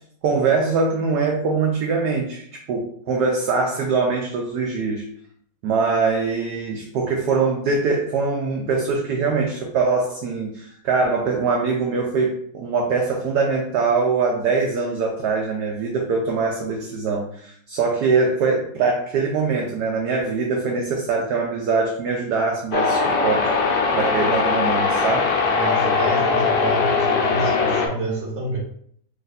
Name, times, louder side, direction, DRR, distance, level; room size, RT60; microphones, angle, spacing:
voice 1, 0.2-5.1 5.6-23.5 23.9-25.3, right 4 dB, 75° right, 1 dB, 0.9 m, -22 dB
sound 1, 22.7-27.9, left 4 dB, 70° left, 0.9 m, -20 dB
voice 2, 25.5-28.6, right 2 dB, 35° right, -3 dB, 1.1 m, -28 dB
3.1 x 2.5 x 3.9 m, 0.64 s
omnidirectional pair, 2.2 m